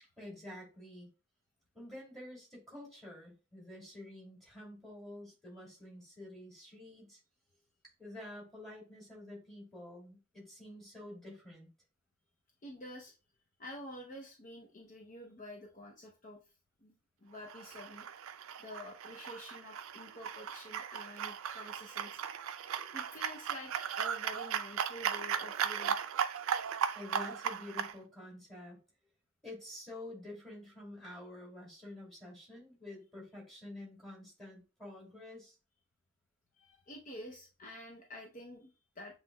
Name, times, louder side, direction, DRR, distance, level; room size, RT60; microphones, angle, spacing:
voice 1, 0.2-1.1 1.7-7.2 8.0-11.7 26.9-28.8 29.4-35.6, left 1 dB, ahead, -4 dB, 2.5 m, -49 dB
voice 2, 12.6-13.1 13.6-16.4 16.8-16.9 17.2-18.1 18.6-22.2 22.9-26.0 36.5-39.2, left 1 dB, 40° left, 1 dB, 0.6 m, -49 dB
sound 1, 17.4-27.9, right 8 dB, 75° right, 0.4 m, -37 dB
7.3 x 3.1 x 2.2 m, 0.32 s
head